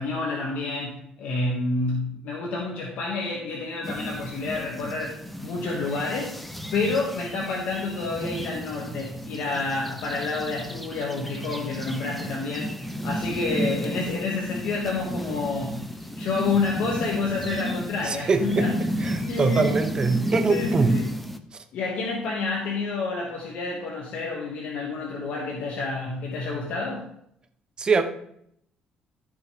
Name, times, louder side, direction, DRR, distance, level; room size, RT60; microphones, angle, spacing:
voice 1, 0.0-6.3 6.7-15.8 16.2-18.7 19.3-19.8 20.5-21.0 21.7-27.1, left 3 dB, 75° left, -3 dB, 2.1 m, -29 dB
sound 1, 3.8-21.4, equal, 5° left, 0.8 m, -32 dB
voice 2, 18.0-18.7 19.0-21.0 21.5-21.6 27.8-28.0, right 4 dB, 30° right, 7 dB, 1.1 m, -23 dB
14.0 x 6.4 x 3.6 m, 0.71 s
cardioid pair, 125°, 3 cm